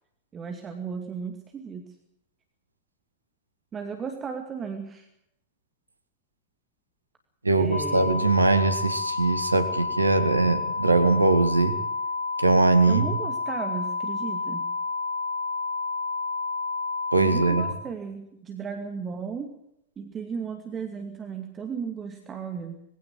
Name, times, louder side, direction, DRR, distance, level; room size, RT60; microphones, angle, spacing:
voice 1, 0.3-1.9 3.7-5.1 7.6-8.3 12.9-14.7 17.1-19.5 20.0-22.8, right 6 dB, 25° right, 5 dB, 2.3 m, -35 dB
voice 2, 7.4-11.8 12.4-13.1 17.1-17.7, right 3 dB, 80° right, 10 dB, 2.0 m, -21 dB
sound 1, 7.7-17.7, left 3 dB, 85° left, 2.9 m, -30 dB
21.5 x 16.5 x 7.7 m, 0.77 s
figure-of-eight pair, 90°, 0 cm